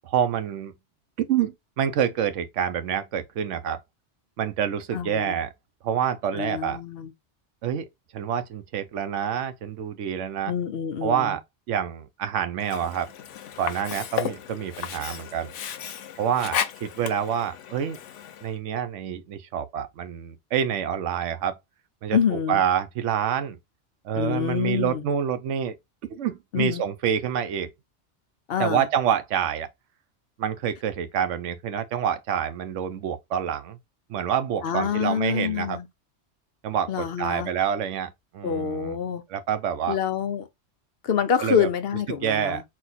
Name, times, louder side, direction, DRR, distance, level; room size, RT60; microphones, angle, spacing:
voice 1, 0.0-0.7 1.3-3.8 4.4-5.5 5.8-6.8 7.6-7.9 8.1-10.5 11.0-11.4 11.7-13.1 13.6-15.5 16.2-18.0 18.4-21.6 22.0-22.2 22.5-23.6 24.0-25.8 26.1-27.7 28.6-29.7 30.4-33.8 34.1-35.8 36.6-39.0 39.3-40.0 41.4-41.7 42.1-42.6, right 9 dB, 90° right, 1.0 m, -27 dB
voice 2, 4.9-5.4 6.3-7.1 10.5-11.4 22.1-22.6 24.1-25.0 26.5-26.8 28.5-28.9 34.6-35.9 36.9-37.5 38.4-39.2 39.9-40.5 41.0-42.6, left 8 dB, 60° left, 0.8 m, -26 dB
Sink (filling or washing), 12.6-18.6, left 9 dB, 90° left, 1.0 m, -34 dB
4.2 x 2.3 x 4.0 m
omnidirectional pair, 1.2 m